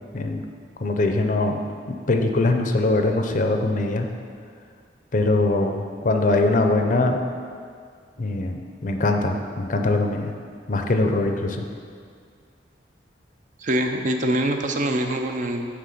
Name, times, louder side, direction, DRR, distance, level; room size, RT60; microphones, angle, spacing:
voice 1, 0.1-0.4 0.8-1.6 2.1-4.1 5.1-7.2 8.2-10.3 10.7-11.6, left 2 dB, 45° left, 4 dB, 0.6 m, -22 dB
voice 2, 13.6-15.7, right 1 dB, 45° right, 4 dB, 0.6 m, -24 dB
9.4 x 3.5 x 6.7 m, 2.2 s
head